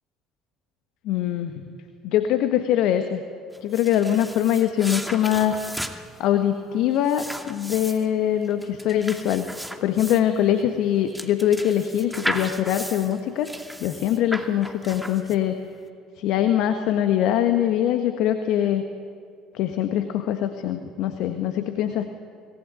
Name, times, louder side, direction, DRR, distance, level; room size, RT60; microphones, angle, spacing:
voice 1, 1.0-1.6 2.0-3.2 3.6-5.6 6.2-9.5 9.8-13.5 13.8-15.6 16.2-18.8 19.5-22.1, left 10 dB, 60° left, 8 dB, 1.5 m, -23 dB
sound 1, 3.5-15.7, equal, ahead, 2.5 m, -35 dB
25.5 x 19.5 x 9.4 m, 2.3 s
figure-of-eight pair, 60°, 0 cm